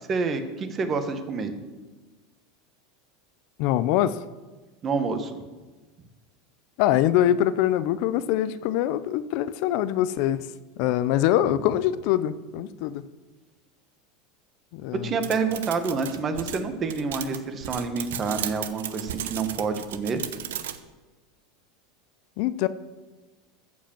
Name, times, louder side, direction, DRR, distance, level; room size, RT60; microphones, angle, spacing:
voice 1, 0.1-1.5 4.8-5.3 14.9-20.2, right 4 dB, 30° right, 7 dB, 1.3 m, -28 dB
voice 2, 3.6-4.2 6.8-10.5 10.8-13.0 14.7-15.2 22.4-22.7, left 12 dB, 60° left, 14 dB, 0.5 m, -24 dB
sound 1, 15.2-20.8, right 10 dB, 90° right, 0.7 m, -35 dB
13.5 x 5.2 x 7.3 m, 1.3 s
supercardioid pair, 125°, 0 cm